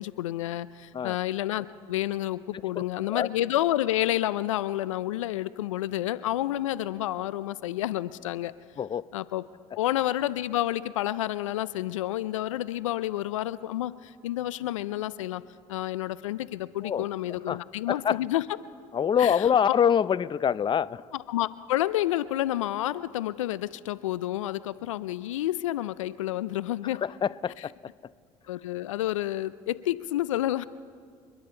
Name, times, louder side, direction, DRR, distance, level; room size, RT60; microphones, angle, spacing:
voice 1, 0.0-8.5 9.1-9.5 9.8-15.4 15.7-18.4 19.2-19.8 21.1-27.0 28.5-30.6, left 14 dB, 85° left, 0.4 m, -29 dB
voice 2, 2.8-3.3 8.8-9.1 16.8-17.1 17.5-17.6 17.9-18.2 18.9-21.0 27.0-27.7, left 8 dB, 30° left, 0.5 m, -25 dB
29.0 x 11.0 x 4.4 m
hypercardioid pair, 60°, 16 cm